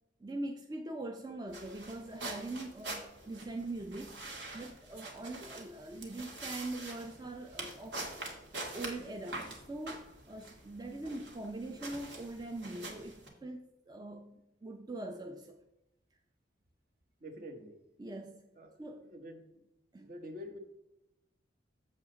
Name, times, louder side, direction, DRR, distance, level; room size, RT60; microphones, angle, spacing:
voice 1, 0.2-8.0 8.6-15.6 18.0-18.5 18.8-19.1 19.9-20.1, right 2 dB, 20° right, 4 dB, 0.5 m, -42 dB
sound 1, 1.5-13.3, right 2 dB, 65° right, 2.0 m, -45 dB
voice 2, 17.2-17.8 18.6-19.6 20.0-20.6, left 1 dB, 50° right, 6 dB, 1.1 m, -47 dB
7.6 x 7.3 x 3.9 m, 0.91 s
head